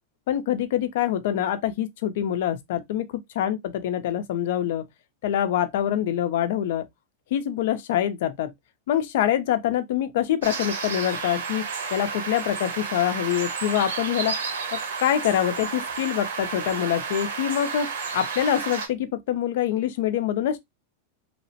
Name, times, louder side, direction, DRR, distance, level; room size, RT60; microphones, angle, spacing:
voice 1, 0.3-4.9 5.2-6.9 7.3-8.5 8.9-14.3 14.7-20.6, left 10 dB, 65° left, 0.5 m, -25 dB
sound 1, 10.4-18.9, right 5 dB, 90° right, 0.9 m, -31 dB
2.9 x 2.0 x 2.7 m
supercardioid pair, 155°, 0 cm